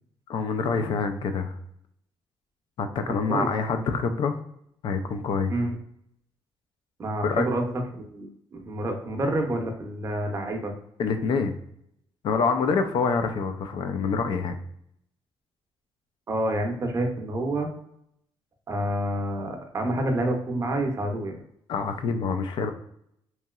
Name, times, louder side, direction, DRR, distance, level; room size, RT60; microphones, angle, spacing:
voice 1, 0.3-1.6 2.8-4.4 4.8-5.5 7.2-7.5 11.0-11.6 12.2-14.6 21.7-22.7, left 5 dB, 55° left, 7 dB, 0.3 m, -26 dB
voice 2, 7.0-7.6 7.9-8.3 8.5-10.7 16.3-17.7 18.7-21.3, right 1 dB, 30° right, 3 dB, 0.6 m, -28 dB
2.9 x 2.7 x 2.3 m, 0.73 s
cardioid pair, 140°, 10 cm